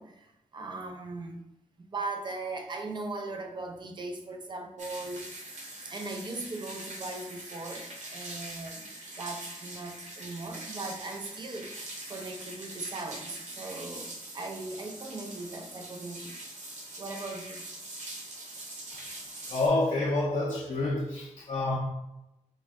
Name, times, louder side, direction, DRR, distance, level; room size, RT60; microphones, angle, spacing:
voice 1, 0.0-1.4 1.8-5.4 5.8-11.7 12.1-16.4 17.0-17.6, right 3 dB, 35° right, 0.5 m, -39 dB
sound 1, 4.8-19.7, right 1 dB, 65° right, 0.9 m, -43 dB
voice 2, 19.5-21.8, left 2 dB, 45° left, 0.5 m, -28 dB
4.0 x 2.1 x 3.4 m
wide cardioid pair, 150°, 13 cm